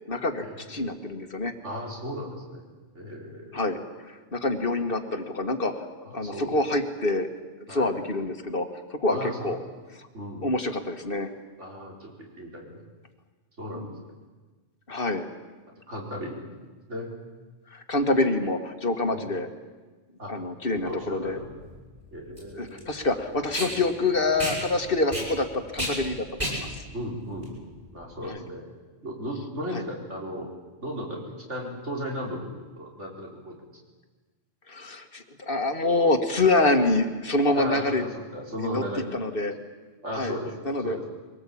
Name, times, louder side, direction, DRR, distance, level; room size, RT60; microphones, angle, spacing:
voice 1, 0.1-1.5 3.5-3.8 4.1-5.9 6.1-7.3 7.7-9.6 10.0-10.1 10.4-11.3 13.7-13.9 14.9-15.3 17.7-19.5 20.3-21.4 22.6-26.8 28.3-28.4 29.7-29.8 34.7-38.0 38.6-38.8 39.1-39.5 40.1-40.4 40.7-41.0, left 2 dB, 50° left, 6 dB, 1.8 m, -26 dB
voice 2, 1.6-2.6 2.9-3.6 6.0-6.6 7.7-7.9 9.1-9.6 10.1-10.5 11.6-12.8 13.6-13.9 15.9-16.4 16.9-17.1 19.1-19.3 20.2-20.3 20.8-21.6 22.1-22.8 26.9-28.6 29.0-30.5 30.8-33.6 37.5-39.1 40.0-40.5 40.8-41.0, equal, 70° right, -2 dB, 4.9 m, -36 dB
Packing tape duct tape, 20.8-28.2, equal, 35° right, 8.1 m, -34 dB
23.5 x 18.5 x 8.5 m, 1.3 s
omnidirectional pair, 1.3 m